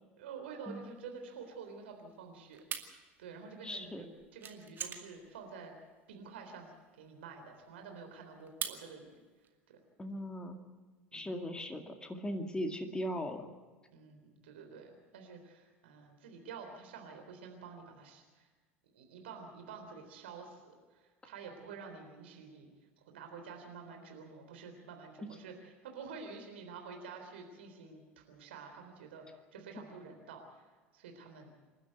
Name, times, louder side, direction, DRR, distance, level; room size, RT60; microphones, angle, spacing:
voice 1, 0.2-5.7 6.1-6.7 7.0-9.2 9.7-9.8 11.1-11.4 13.9-18.5 18.9-22.7 23.1-30.7 30.9-31.5, right 5 dB, 70° right, 4 dB, 3.6 m, -49 dB
sound 1, 0.8-9.5, right 7 dB, 30° right, 2.2 m, -45 dB
voice 2, 3.6-4.1 10.0-10.6 11.1-13.5, equal, 15° left, 4 dB, 2.2 m, -39 dB
28.0 x 12.0 x 8.1 m, 1.3 s
figure-of-eight pair, 70°, 6 cm